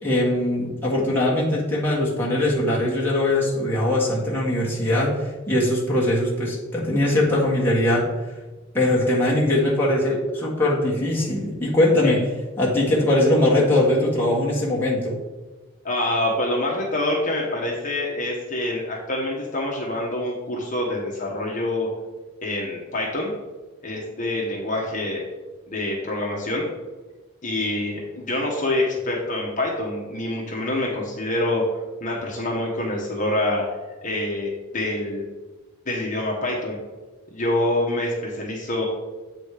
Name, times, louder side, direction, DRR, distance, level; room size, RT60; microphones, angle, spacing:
voice 1, 0.0-8.0 8.7-12.3 12.6-15.1, left 1 dB, 10° left, -6 dB, 1.6 m, -21 dB
voice 2, 15.8-21.9 22.4-23.3 23.8-25.2 25.7-26.7 27.4-31.7 32.0-33.7 34.0-35.3 35.9-36.8 37.3-38.9, left 1 dB, 40° left, -3 dB, 1.2 m, -26 dB
8.1 x 4.1 x 4.9 m, 1.2 s
head